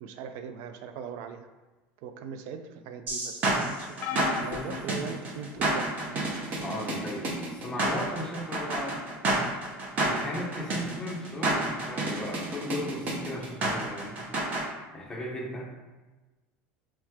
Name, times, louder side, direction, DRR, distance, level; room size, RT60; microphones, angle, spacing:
voice 1, 0.0-1.5 2.0-4.0 4.4-6.2, right 6 dB, 60° right, 9 dB, 0.3 m, -40 dB
sound 1, 3.1-14.6, right 2 dB, 35° right, 0.7 m, -29 dB
sound 2, 4.0-5.8 6.6-6.8 8.1-8.2, left 7 dB, 45° left, 0.4 m, -37 dB
voice 2, 6.6-9.0 10.0-14.3 14.9-15.7, left 1 dB, 10° left, -2 dB, 0.7 m, -36 dB
3.1 x 3.1 x 3.5 m, 1.2 s
supercardioid pair, 145°, 5 cm